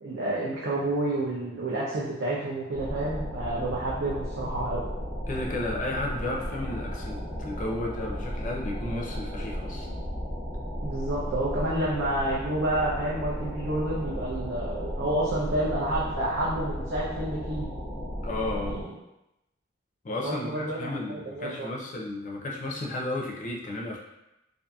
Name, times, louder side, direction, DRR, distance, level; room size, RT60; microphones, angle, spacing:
voice 1, 0.0-4.8 10.8-17.8 18.5-18.9 20.2-21.7, right 1 dB, 85° right, -7 dB, 0.5 m, -29 dB
sound 1, 2.7-18.8, equal, 10° right, 0.5 m, -34 dB
voice 2, 5.3-9.9 18.2-18.8 20.0-24.0, left 1 dB, 40° left, -1 dB, 0.4 m, -33 dB
2.6 x 2.5 x 2.3 m, 0.92 s
head